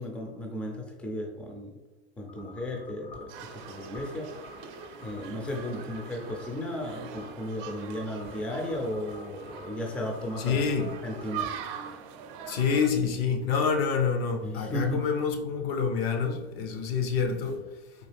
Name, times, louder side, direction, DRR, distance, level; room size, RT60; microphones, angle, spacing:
voice 1, 0.0-1.7 2.2-4.3 5.0-10.7 11.0-11.5 14.4-15.1, left 1 dB, 5° left, 0.3 m, -35 dB
sound 1, 2.3-11.6, left 3 dB, 90° left, 1.5 m, -51 dB
sound 2, 3.3-12.9, right 7 dB, 60° right, 0.5 m, -42 dB
voice 2, 10.4-10.9 12.5-17.6, left 6 dB, 70° left, 0.7 m, -27 dB
3.8 x 2.4 x 3.3 m
supercardioid pair, 130°, 30 cm